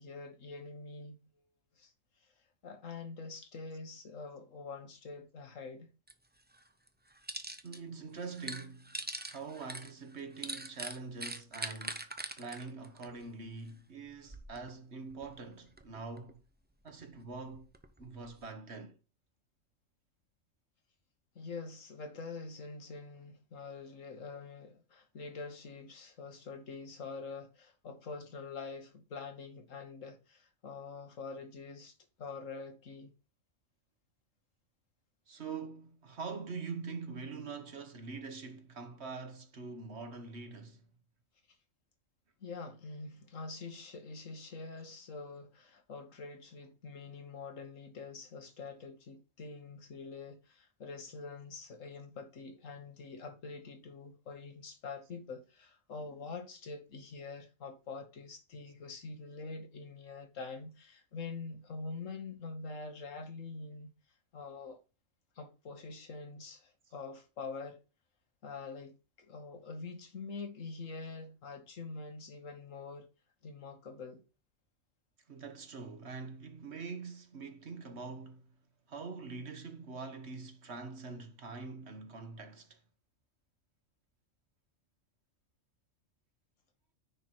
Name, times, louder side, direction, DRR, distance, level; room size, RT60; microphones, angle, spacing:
voice 1, 0.0-1.4 1.8-1.9 2.2-2.3 2.6-5.9 21.4-33.1 42.4-63.9 64.3-64.8 65.4-67.8 68.4-73.1 73.4-74.2, left 4 dB, 75° left, 1.7 m, -45 dB
sound 1, 6.1-6.2 6.5-7.8 8.1-13.7 14.1-14.7 15.1-16.4 16.9-18.4, right 2 dB, 10° right, 0.5 m, -43 dB
voice 2, 7.6-8.9 9.3-12.1 12.4-16.4 16.8-17.7 18.0-19.0 35.3-40.9 75.3-78.5 78.9-82.8, right 4 dB, 55° right, 1.5 m, -44 dB
10.0 x 4.6 x 4.5 m
omnidirectional pair, 1.4 m